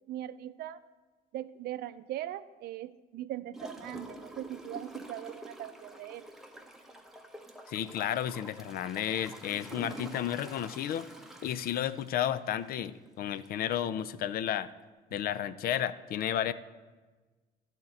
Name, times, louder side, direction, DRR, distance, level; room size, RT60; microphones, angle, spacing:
voice 1, 0.1-0.8 1.3-6.3, right 13 dB, 70° right, 14 dB, 0.5 m, -40 dB
Gurgling / Toilet flush, 3.5-12.9 13.4-13.5, right 1 dB, ahead, 0.9 m, -47 dB
voice 2, 7.7-11.1 11.4-14.7 15.1-16.5, left 10 dB, 60° left, 15 dB, 0.5 m, -32 dB
12.0 x 4.5 x 7.8 m, 1.3 s
cardioid pair, 110°, 17 cm